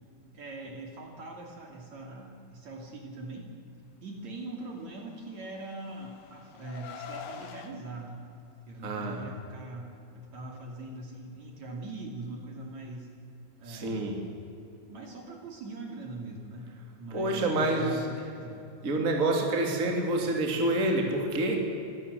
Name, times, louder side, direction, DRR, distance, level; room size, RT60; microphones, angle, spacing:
voice 1, 0.3-3.5 4.0-8.3 8.7-13.1 13.6-14.2 14.9-18.7, right 2 dB, 50° right, 1 dB, 3.6 m, -42 dB
Car, 5.2-7.7, left 8 dB, 65° left, 3.0 m, -45 dB
voice 2, 8.8-9.2 13.7-14.2 17.1-18.0 18.8-21.6, right 2 dB, 25° right, 1 dB, 2.8 m, -27 dB
25.5 x 16.5 x 7.9 m, 2.8 s
omnidirectional pair, 4.5 m